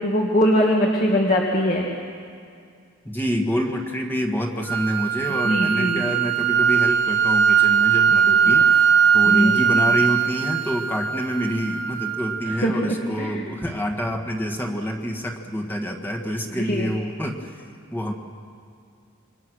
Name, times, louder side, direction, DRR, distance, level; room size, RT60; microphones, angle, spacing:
voice 1, 0.0-1.9 5.4-6.0 8.4-8.6 9.3-9.5 12.5-13.5 16.6-16.9, equal, 40° left, -2 dB, 1.9 m, -22 dB
voice 2, 3.0-17.6 17.9-18.1, equal, 10° left, 2 dB, 1.6 m, -27 dB
sound 1, 4.7-12.7, right 7 dB, 70° right, 1.2 m, -20 dB
27.5 x 23.5 x 6.3 m, 2.3 s
head